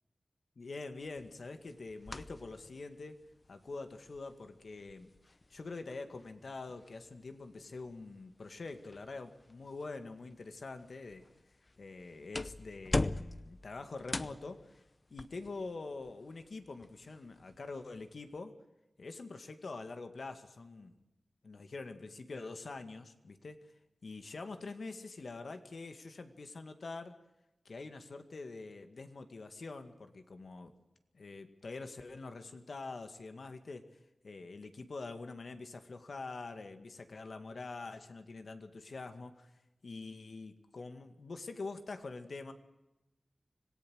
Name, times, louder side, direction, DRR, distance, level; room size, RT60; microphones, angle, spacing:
voice 1, 0.6-3.2 3.5-5.1 5.5-11.2 11.8-14.7 15.1-18.6 19.0-21.0 21.4-23.7 24.0-27.2 27.7-30.7 31.1-33.9 34.2-39.5 39.8-42.5, left 3 dB, 75° left, 7 dB, 2.1 m, -45 dB
sound 1, 1.0-18.4, left 2 dB, 40° left, 0.8 m, -44 dB
25.5 x 18.0 x 6.5 m, 0.98 s
cardioid pair, 55°, 0 cm